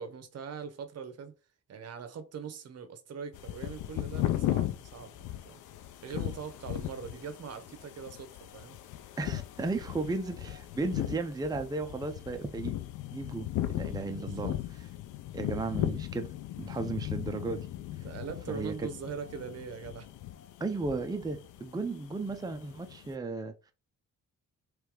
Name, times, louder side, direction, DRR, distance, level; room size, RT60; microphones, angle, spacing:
voice 1, 0.0-1.3 1.7-5.6 6.0-8.8 14.1-14.6 18.0-20.1, right 6 dB, 55° right, 1.0 m, -42 dB
sound 1, 3.3-23.1, left 13 dB, 80° left, 0.6 m, -37 dB
voice 2, 9.2-12.8 13.1-14.5 15.3-16.3 16.6-17.7 18.5-18.9 20.6-23.7, right 3 dB, 15° right, 0.6 m, -35 dB
3.4 x 3.3 x 4.8 m
cardioid pair, 90°, 30 cm